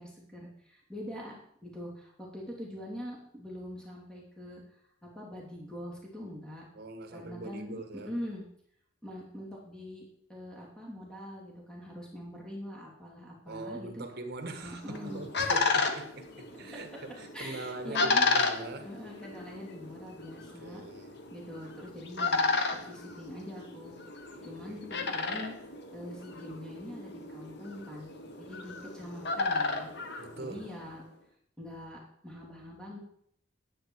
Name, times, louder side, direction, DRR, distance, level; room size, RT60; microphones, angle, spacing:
voice 1, 0.0-4.6 5.0-6.6 7.1-8.4 9.0-14.0 14.6-15.7 17.3-18.3 18.8-20.8 21.3-24.0 24.4-25.5 25.9-28.1 28.4-29.9 30.4-31.0 31.6-33.0, left 1 dB, 5° left, 2.8 m, -43 dB
voice 2, 6.7-8.1 13.5-18.9 20.3-21.1 24.4-24.8 30.2-30.7, right 2 dB, 55° right, 1.3 m, -42 dB
sound 1, 14.7-30.9, left 3 dB, 60° left, 1.2 m, -33 dB
10.5 x 8.6 x 4.7 m
head